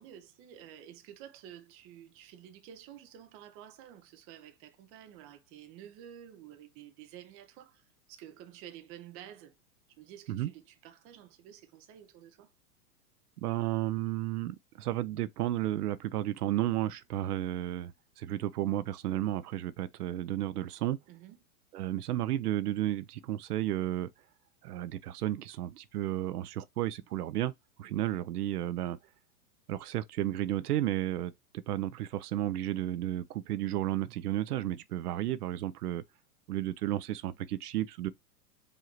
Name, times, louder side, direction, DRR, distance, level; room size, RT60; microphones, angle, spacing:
voice 1, 0.0-9.6 10.0-12.5 21.1-21.4 35.1-35.3, right 10 dB, 30° right, 0.6 m, -51 dB
voice 2, 13.4-21.0 21.7-24.1 24.6-27.5 27.8-29.0 29.7-31.3 31.7-36.0 36.5-38.1, right 13 dB, 75° right, 0.6 m, -32 dB
4.9 x 2.7 x 3.0 m
hypercardioid pair, 120°, 46 cm